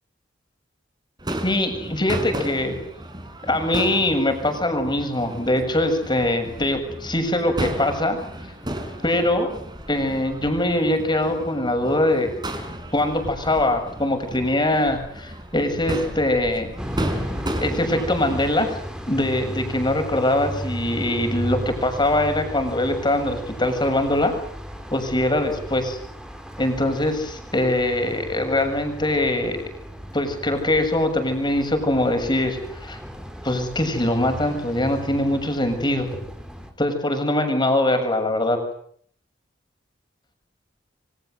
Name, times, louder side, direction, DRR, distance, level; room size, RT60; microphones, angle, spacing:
Crowd / Fireworks, 1.2-18.5, right 1 dB, 25° right, 5.2 m, -34 dB
voice 1, 1.4-2.8 3.5-8.2 9.0-9.5 9.9-12.3 12.9-16.7 17.6-18.7 19.1-24.3 24.9-26.0 26.6-29.6 30.1-33.0 33.4-36.1 36.8-38.6, left 1 dB, 25° left, 6 dB, 7.3 m, -22 dB
sound 1, 16.8-36.7, equal, 5° right, 4.6 m, -35 dB
28.5 x 25.5 x 8.1 m, 0.64 s
head